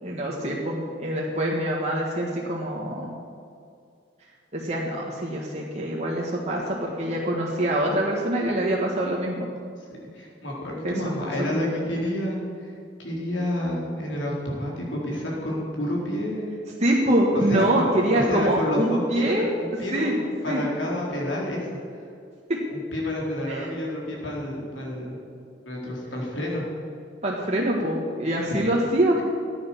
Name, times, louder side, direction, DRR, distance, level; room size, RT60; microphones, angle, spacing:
voice 1, 0.0-3.1 4.5-9.5 10.8-10.9 11.5-11.8 16.8-19.4 19.9-20.1 20.5-20.6 22.5-22.6 23.5-23.7 27.2-29.2, right 1 dB, 35° right, -3 dB, 1.6 m, -24 dB
voice 2, 10.1-12.7 13.0-16.5 17.3-17.9 18.1-21.7 22.7-25.2 25.6-26.6 28.5-28.6, left 1 dB, 85° left, -3 dB, 4.2 m, -29 dB
14.5 x 9.6 x 7.2 m, 2.4 s
head